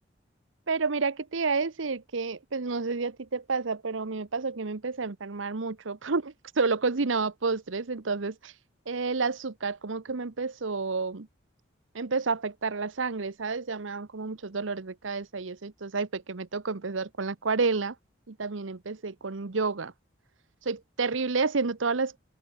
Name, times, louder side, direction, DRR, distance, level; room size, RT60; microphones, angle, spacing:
voice 1, 0.7-8.5 8.9-11.3 11.9-17.9 18.3-19.9 20.6-22.2, right 4 dB, 85° right, 0.9 m, -30 dB
open air
head